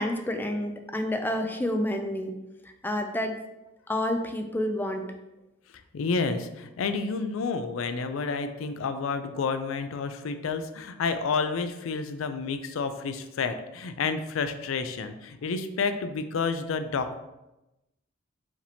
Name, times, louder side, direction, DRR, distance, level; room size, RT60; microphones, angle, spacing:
voice 1, 0.0-2.3 2.6-3.3 3.9-5.0, left 1 dB, 10° left, 5 dB, 0.3 m, -29 dB
voice 2, 5.9-17.2, left 4 dB, 85° left, 9 dB, 0.4 m, -30 dB
4.9 x 2.7 x 3.4 m, 0.96 s
head